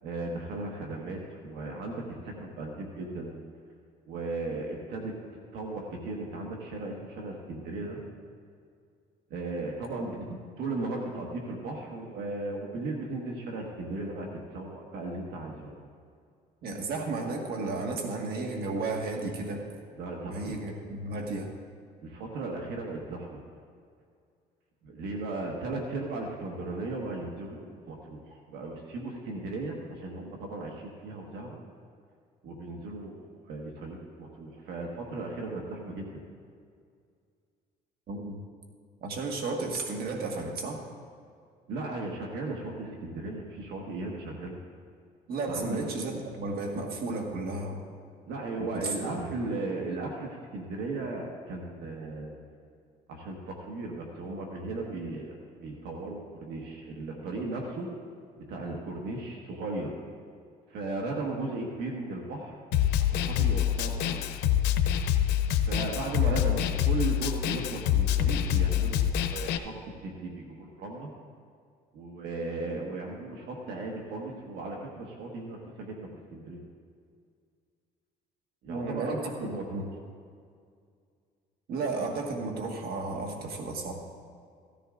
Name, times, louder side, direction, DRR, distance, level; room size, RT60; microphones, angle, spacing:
voice 1, 0.0-3.4 4.1-5.1 5.5-8.0 9.3-10.2 10.6-15.9 20.0-20.6 22.0-23.4 24.8-31.6 32.4-36.2 41.7-44.5 45.5-45.8 48.2-52.4 53.1-57.9 58.4-59.9 60.7-62.6 63.0-64.2 65.6-71.1 71.9-76.6 78.6-79.9, right 2 dB, 80° right, 0 dB, 1.5 m, -36 dB
voice 2, 9.9-10.3 16.6-19.6 20.2-21.5 38.1-38.4 39.0-40.8 45.3-47.8 48.6-49.3 78.7-79.8 81.7-83.9, right 3 dB, 65° right, 1 dB, 1.7 m, -33 dB
Snare drum, 62.7-69.6, left 10 dB, 90° left, 0.7 m, -26 dB
16.0 x 14.0 x 2.5 m, 2.2 s
cardioid pair, 110°, 17 cm